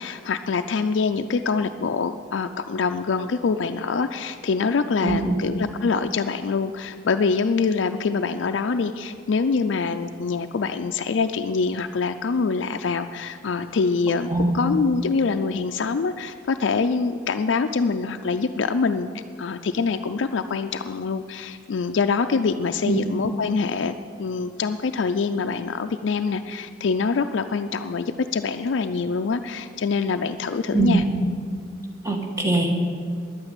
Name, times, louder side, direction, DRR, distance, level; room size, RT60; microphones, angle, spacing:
voice 1, 0.0-19.1 19.4-31.0, left 4 dB, 70° left, 7 dB, 0.4 m, -25 dB
voice 2, 5.0-5.4 14.3-14.5 22.9-23.0 30.7-31.0 32.0-32.8, right 3 dB, 15° right, 2 dB, 1.4 m, -22 dB
10.5 x 9.0 x 8.9 m, 2.2 s
head